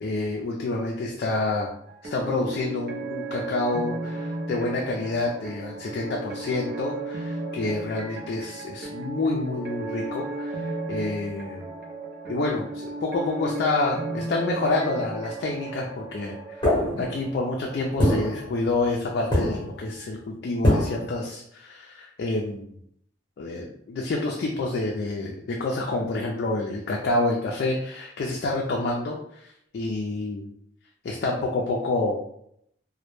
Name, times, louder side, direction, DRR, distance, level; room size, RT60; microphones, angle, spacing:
voice 1, 0.0-1.7 2.0-11.7 12.3-22.8 23.4-30.5 31.0-32.2, left 2 dB, 55° left, -1 dB, 0.3 m, -28 dB
sound 1, 1.9-18.3, right 2 dB, 55° right, 0.5 m, -35 dB
sound 2, 16.6-17.4 18.0-19.0 19.3-19.9 20.6-21.1, left 1 dB, 25° left, 0.8 m, -23 dB
2.1 x 2.0 x 3.0 m, 0.71 s
head